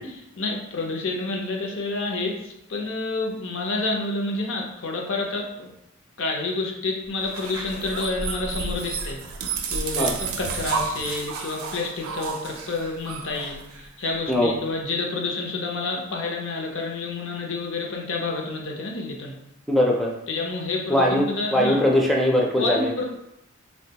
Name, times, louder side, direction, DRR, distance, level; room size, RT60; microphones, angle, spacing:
voice 1, 0.0-5.7 6.2-9.2 9.7-19.3 20.3-21.8 22.6-23.0, left 3 dB, 65° left, 0 dB, 0.6 m, -29 dB
sound 1, 7.2-14.1, right 5 dB, 85° right, 0.4 m, -31 dB
voice 2, 19.7-20.1 20.9-21.3 21.5-22.9, left 1 dB, ahead, -2 dB, 0.4 m, -20 dB
3.3 x 2.2 x 2.8 m, 0.81 s
head